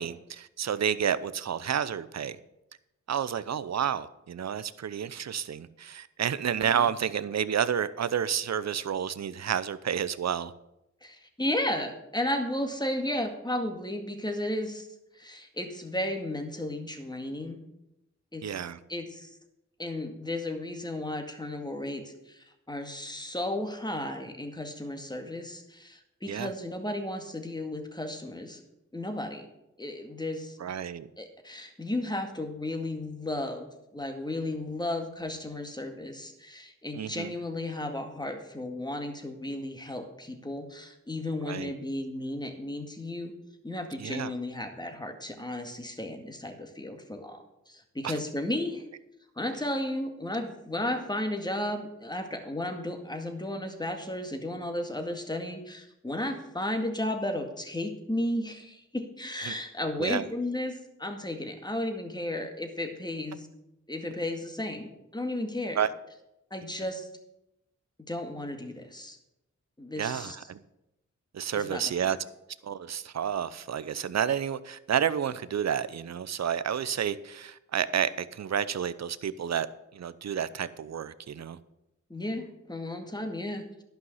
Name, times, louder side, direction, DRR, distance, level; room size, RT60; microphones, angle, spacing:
voice 1, 0.0-2.4 3.1-10.5 18.4-18.8 26.3-26.5 30.6-31.1 36.9-37.3 41.5-41.7 44.0-44.3 48.0-48.1 59.5-59.6 60.0-60.2 65.7-65.9 70.0-70.6 71.3-72.2 72.6-79.7 79.9-81.6, right 8 dB, 60° right, 16 dB, 0.7 m, -30 dB
voice 2, 11.0-14.9 15.1-17.6 18.3-18.6 18.9-19.4 19.8-28.6 28.9-29.5 29.8-30.6 31.2-33.7 33.9-43.3 43.6-48.8 49.4-63.5 63.9-65.8 66.5-67.1 68.1-69.2 69.8-70.4 71.5-71.9 82.1-83.7, left 1 dB, 15° left, 5 dB, 2.0 m, -34 dB
11.5 x 5.6 x 7.9 m, 0.88 s
cardioid pair, 45°, 30 cm